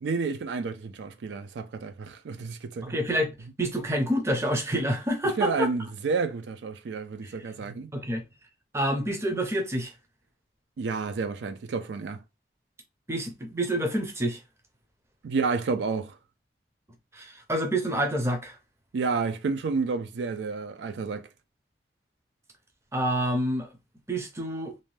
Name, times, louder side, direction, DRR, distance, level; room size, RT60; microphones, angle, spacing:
voice 1, 0.0-2.9 5.4-7.9 10.8-12.2 15.2-16.2 18.9-21.3, right 4 dB, 85° right, 0.4 m, -30 dB
voice 2, 2.8-3.3 3.6-5.7 7.2-7.3 7.9-8.2 8.7-9.9 13.1-14.4 17.1-18.6 22.9-23.7 24.1-24.7, right 1 dB, 15° right, 0.5 m, -27 dB
2.6 x 2.1 x 3.1 m
head